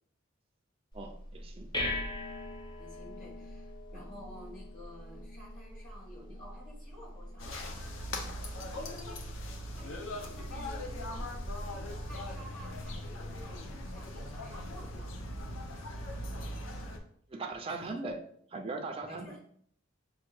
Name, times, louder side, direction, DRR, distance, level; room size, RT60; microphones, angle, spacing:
sound 1, 0.9-11.9, left 1 dB, 20° left, 0.7 m, -43 dB
voice 1, 0.9-1.8 3.9-4.0 17.3-18.2 18.5-19.4, right 3 dB, 30° right, 4 dB, 0.4 m, -39 dB
voice 2, 2.8-7.7 8.0-11.4 12.1-15.3 16.3-16.7 17.8-18.0 19.1-19.4, left 1 dB, 40° left, -4 dB, 1.8 m, -52 dB
sound 2, 7.4-17.0, left 1 dB, 70° left, 0.7 m, -40 dB
6.0 x 2.5 x 3.1 m, 0.63 s
head